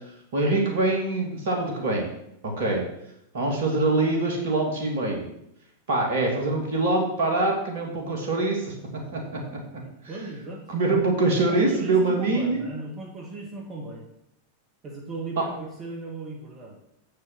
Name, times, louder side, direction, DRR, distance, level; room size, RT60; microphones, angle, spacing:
voice 1, 0.3-2.1 2.4-2.8 3.3-5.3 5.9-8.7 9.1-9.2 9.5-9.6 10.7-12.7, right 2 dB, 60° right, 1 dB, 2.8 m, -24 dB
voice 2, 9.8-10.6 11.5-14.1 14.8-16.8, right 3 dB, 25° right, -1 dB, 2.0 m, -36 dB
8.2 x 6.6 x 6.3 m, 0.79 s
figure-of-eight pair, 90°, 0 cm